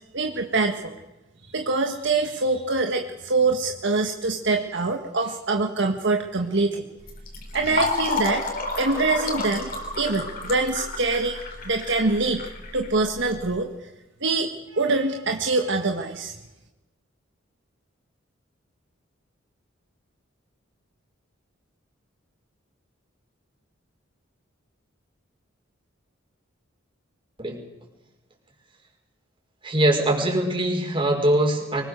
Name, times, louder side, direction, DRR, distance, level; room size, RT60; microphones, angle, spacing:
voice 1, 0.1-1.0 1.4-6.9 7.5-11.4 11.7-12.5 12.7-13.7 14.2-16.3, right 3 dB, 60° right, 3 dB, 1.7 m, -24 dB
Fill (with liquid), 7.0-13.4, left 3 dB, 50° left, 4.7 m, -31 dB
voice 2, 29.6-31.8, right 1 dB, 25° right, 1 dB, 5.5 m, -22 dB
24.5 x 21.0 x 6.8 m, 1.0 s
head